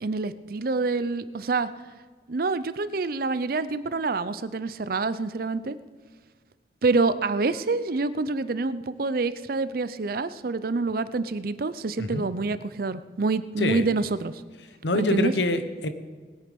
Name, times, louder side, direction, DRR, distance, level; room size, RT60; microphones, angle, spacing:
voice 1, 0.0-1.7 2.3-5.8 6.8-14.3 14.9-15.3, right 3 dB, 55° right, 14 dB, 0.5 m, -27 dB
voice 2, 13.6-13.9 14.8-15.9, left 2 dB, 80° left, 9 dB, 1.1 m, -25 dB
20.0 x 8.6 x 5.3 m, 1.5 s
head